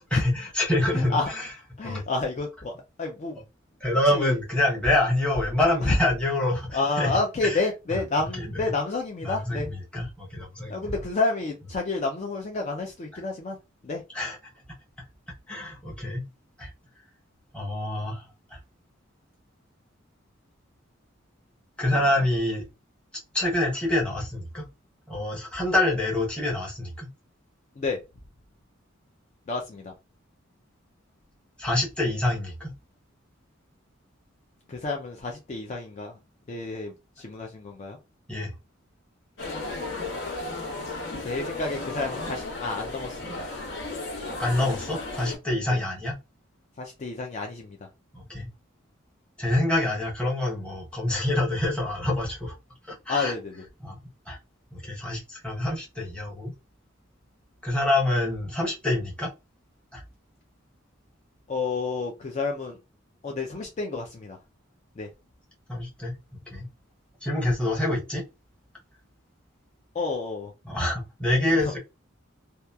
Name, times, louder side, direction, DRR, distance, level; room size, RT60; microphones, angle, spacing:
voice 1, 0.1-1.5 1.8-2.0 3.8-7.1 7.4-7.6 8.2-8.7 9.2-10.9 14.1-14.4 15.5-16.3 16.6-16.7 17.5-18.2 18.5-18.6 21.8-22.6 23.3-24.7 25.1-27.1 31.6-32.7 38.3-38.5 44.4-46.2 48.1-48.5 49.4-52.5 52.9-53.3 53.8-54.0 54.3-54.4 54.7-56.5 57.6-59.3 59.9-60.0 65.7-66.7 67.2-68.2 70.6-71.8, left 1 dB, 5° left, 0.9 m, -26 dB
voice 2, 0.9-1.3 1.8-2.7 3.0-3.4 4.1-4.4 5.8-6.0 6.7-9.7 10.7-13.6 13.8-14.0 21.9-22.0 27.8-28.0 29.5-29.9 34.7-36.2 36.5-38.0 40.2-40.5 41.2-43.4 45.7-45.8 46.8-47.8 53.1-53.6 61.5-62.8 63.2-64.4 65.0-65.1 69.9-70.5 71.5-71.6, left 3 dB, 35° left, 0.4 m, -30 dB
sound 1, 39.4-45.4, left 2 dB, 65° left, 1.0 m, -34 dB
2.8 x 2.2 x 2.3 m
head